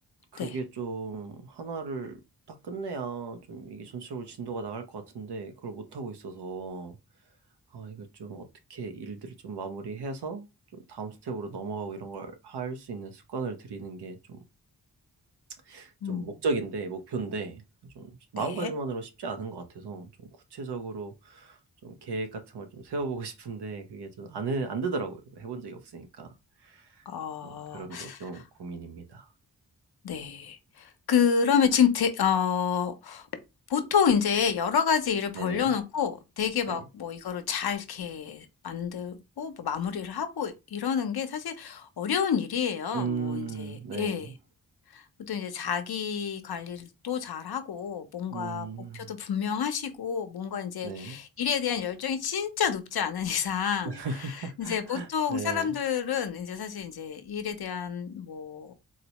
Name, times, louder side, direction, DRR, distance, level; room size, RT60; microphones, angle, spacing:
voice 1, 0.3-2.2 2.6-7.0 7.7-8.4 8.7-10.5 10.7-14.4 15.7-26.3 26.6-27.0 27.4-29.3 35.4-35.7 36.7-36.8 42.9-44.3 48.3-49.1 50.8-51.2 53.8-55.7, right 4 dB, 75° right, 0.7 m, -36 dB
voice 2, 16.0-16.4 18.4-18.7 27.1-28.4 30.0-33.3 33.7-44.3 44.9-48.7 48.9-54.0 54.3-58.7, left 7 dB, 65° left, 0.6 m, -29 dB
4.0 x 2.0 x 2.9 m
cardioid pair, 50°, 40 cm